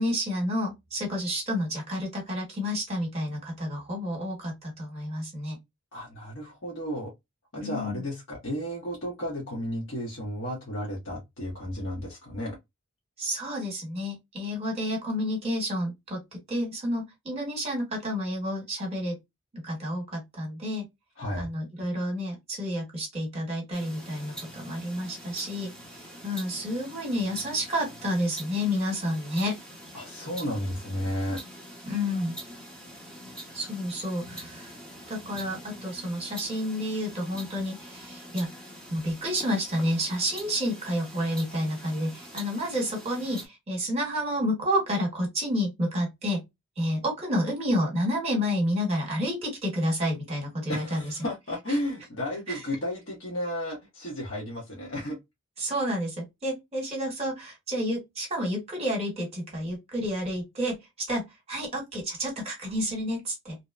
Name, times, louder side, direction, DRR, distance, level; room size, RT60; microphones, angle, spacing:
voice 1, 0.0-5.6 7.6-8.0 13.2-19.2 19.5-20.8 21.4-29.5 31.8-32.3 33.5-34.7 35.1-38.5 38.9-46.4 46.8-51.1 52.5-52.6 55.6-61.2 61.5-63.6, equal, 30° right, 1.1 m, -30 dB
voice 2, 5.9-7.1 7.5-12.6 21.2-21.5 29.9-31.4 50.7-55.2, equal, 60° left, 1.0 m, -33 dB
sound 1, 23.7-43.5, right 1 dB, 5° left, 0.8 m, -44 dB
2.7 x 2.1 x 2.3 m
head